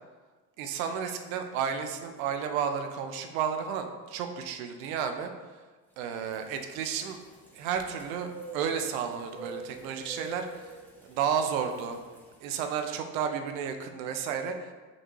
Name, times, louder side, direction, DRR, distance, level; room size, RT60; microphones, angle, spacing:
voice 1, 0.6-5.3 6.0-7.2 7.5-10.7 11.0-12.0 12.4-14.7, right 7 dB, 55° right, 6 dB, 0.5 m, -32 dB
sound 1, 6.0-12.6, right 2 dB, 5° left, 0.5 m, -47 dB
3.8 x 2.4 x 3.0 m, 1.3 s
hypercardioid pair, 80°, 50 cm